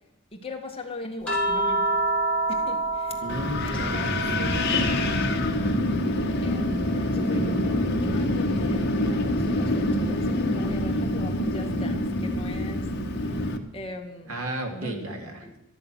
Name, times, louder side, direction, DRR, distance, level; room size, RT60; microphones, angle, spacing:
voice 1, 0.3-2.0 2.5-3.2 3.6-5.0 6.4-13.4 13.7-14.4 14.7-15.1 15.4-15.5, left 1 dB, 25° left, 2 dB, 1.9 m, -40 dB
sound 1, 1.3-5.7 6.1-7.7 9.3-9.4, right 2 dB, 5° left, 3.1 m, -29 dB
voice 2, 3.2-4.1 14.3-15.6, right 1 dB, 75° right, 3 dB, 2.7 m, -34 dB
Wind, 3.3-13.6, left 1 dB, 55° left, 1.3 m, -26 dB
12.5 x 11.0 x 6.3 m, 0.91 s
head